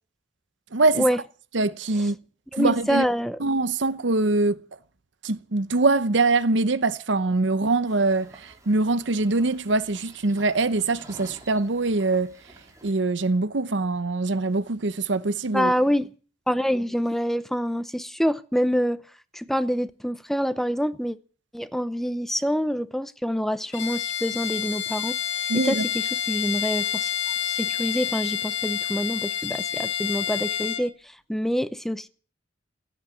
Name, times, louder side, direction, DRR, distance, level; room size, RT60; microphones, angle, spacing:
voice 1, 0.7-1.1 1.5-2.2 2.6-3.0 3.4-4.6 5.2-12.3 12.8-15.7 25.5-25.8, right 3 dB, 75° right, 0.9 m, -23 dB
voice 2, 2.5-3.4 15.5-16.1 16.5-19.0 19.3-21.2 21.5-25.2 25.6-27.1 27.4-32.1, equal, ahead, 0.7 m, -26 dB
sound 1, 7.9-12.9, right 2 dB, 20° right, 4.4 m, -50 dB
Bowed string instrument, 23.7-30.9, left 9 dB, 75° left, 2.1 m, -28 dB
16.5 x 8.9 x 9.7 m
head